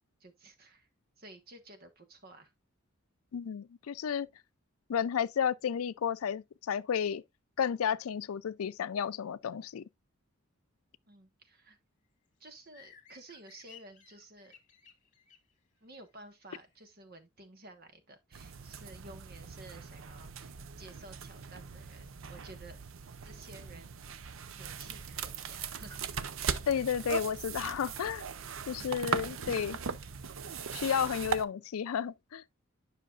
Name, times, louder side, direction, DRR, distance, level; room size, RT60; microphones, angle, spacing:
voice 1, 0.2-0.9 1.2-2.5 11.1-11.8 12.4-14.6 15.8-22.8 23.2-24.0 24.5-26.2 28.8-29.0, right 2 dB, 45° right, 1.3 m, -53 dB
voice 2, 3.3-4.3 4.9-7.2 7.6-9.8 26.7-28.2 28.7-29.8 30.7-32.4, left 8 dB, 90° left, 0.4 m, -32 dB
sound 1, 12.6-16.8, left 7 dB, 35° left, 1.7 m, -58 dB
sound 2, 18.3-31.4, right 6 dB, 70° right, 0.6 m, -39 dB
10.0 x 5.7 x 2.4 m
head